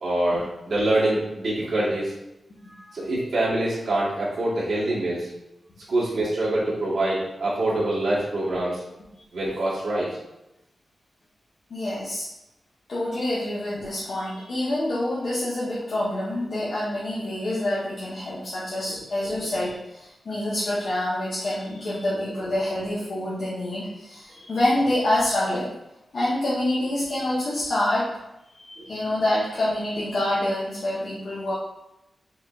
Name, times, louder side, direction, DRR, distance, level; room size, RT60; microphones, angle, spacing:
voice 1, 0.0-2.1 2.9-5.3 5.9-8.8 9.3-10.1 18.9-19.0 22.1-22.2 28.8-28.9, right 1 dB, 55° right, -9 dB, 1.2 m, -25 dB
voice 2, 11.7-12.3 12.9-25.7 26.1-28.1 28.5-31.5, left 1 dB, 60° left, -8 dB, 0.9 m, -27 dB
4.8 x 3.9 x 2.4 m, 0.91 s
wide cardioid pair, 175°, 0 cm